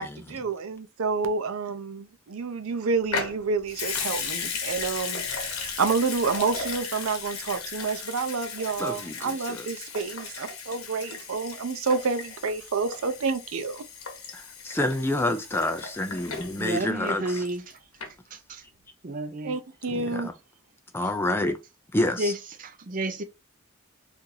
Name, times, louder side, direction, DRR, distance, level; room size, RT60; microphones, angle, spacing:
voice 1, 0.0-13.8 19.4-20.3, right 4 dB, 85° right, 0.5 m, -29 dB
Water tap faucet / Sink (filling or washing) / Liquid, 3.1-17.7 18.0-18.1, left 5 dB, 85° left, 0.9 m, -36 dB
voice 2, 8.8-9.7 14.6-17.4 19.9-20.3 20.9-21.6 21.9-22.3, left 1 dB, 10° left, 0.3 m, -28 dB
voice 3, 16.6-17.6 18.3-18.6 19.0-19.5 22.2-23.2, right 1 dB, 40° right, 0.5 m, -31 dB
2.8 x 2.6 x 3.7 m
head